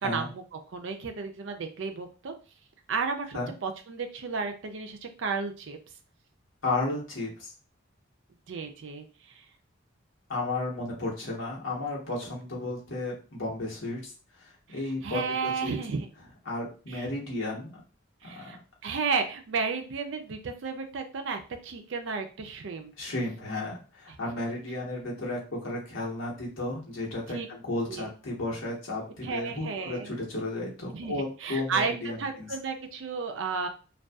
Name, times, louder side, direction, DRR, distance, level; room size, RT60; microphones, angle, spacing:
voice 1, 0.0-2.3 2.9-5.8 8.5-9.1 9.4-9.5 14.7-16.1 16.9-17.1 18.2-18.6 18.8-22.9 27.3-27.5 27.9-28.1 29.2-30.1 30.9-31.9 32.2-33.7, right 5 dB, 70° right, 5 dB, 0.4 m, -33 dB
voice 2, 6.6-7.5 10.3-14.0 14.7-15.2 15.6-15.7 16.5-17.7 18.2-18.6 23.0-32.5, left 2 dB, 80° left, -3 dB, 1.0 m, -33 dB
2.6 x 2.3 x 2.3 m, 0.35 s
head